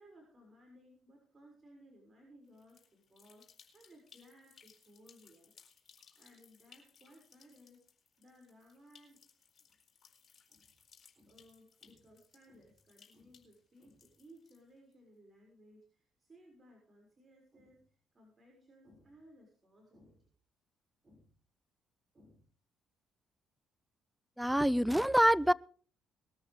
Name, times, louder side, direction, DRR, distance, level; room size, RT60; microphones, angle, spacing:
voice 1, 0.0-3.5 3.7-5.5 5.9-7.8 8.2-9.2 9.6-9.7 10.5-10.7 11.1-17.8 18.1-20.3 21.0-21.3 22.1-22.4, equal, 35° right, 0 dB, 6.5 m, -61 dB
sound 1, 2.5-14.9, left 6 dB, 45° left, 4.4 m, -64 dB
voice 2, 24.4-25.5, equal, 5° right, 19 dB, 0.6 m, -26 dB
21.0 x 13.5 x 3.7 m, 0.42 s
hypercardioid pair, 50°, 0 cm